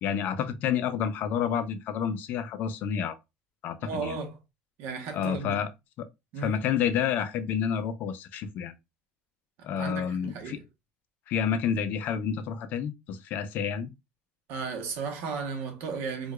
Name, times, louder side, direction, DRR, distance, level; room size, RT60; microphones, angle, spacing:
voice 1, 0.0-3.2 3.6-4.2 5.1-5.7 6.0-6.1 6.4-8.7 9.6-10.6 11.3-13.9, left 8 dB, 45° left, 0.4 m, -29 dB
voice 2, 3.8-4.4 4.8-5.6 6.3-6.6 9.8-10.6 14.5-16.3, right 5 dB, 60° right, 0.9 m, -35 dB
4.6 x 2.3 x 2.2 m
cardioid pair, 170°, 4 cm